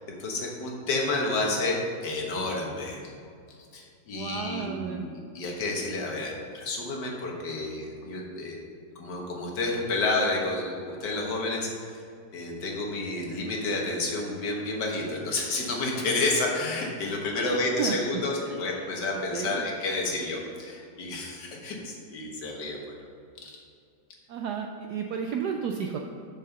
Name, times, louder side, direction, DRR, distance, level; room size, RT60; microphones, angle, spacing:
voice 1, 0.2-3.0 3.7-8.6 8.9-12.0 12.3-22.8 23.4-23.6, left 2 dB, 60° left, -1 dB, 1.8 m, -30 dB
voice 2, 4.1-5.1 15.3-15.4 17.3-18.9 19.3-19.6 24.3-26.0, right 7 dB, 75° right, 3 dB, 0.9 m, -33 dB
6.4 x 5.6 x 6.6 m, 2.4 s
omnidirectional pair, 2.2 m